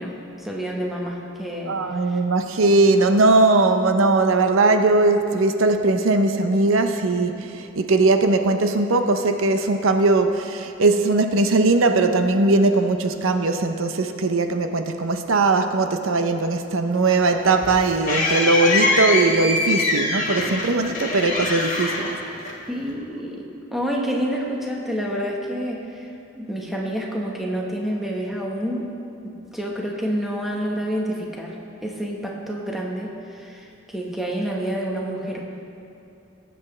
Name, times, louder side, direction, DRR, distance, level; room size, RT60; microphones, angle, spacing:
voice 1, 0.0-1.8 2.1-2.2 22.7-28.9 29.2-35.5, equal, ahead, -2 dB, 1.2 m, -28 dB
voice 2, 1.7-22.2, right 3 dB, 80° right, 7 dB, 0.6 m, -19 dB
sound 1, 17.1-22.9, left 2 dB, 40° left, 1.5 m, -24 dB
19.5 x 7.9 x 3.2 m, 2.7 s
head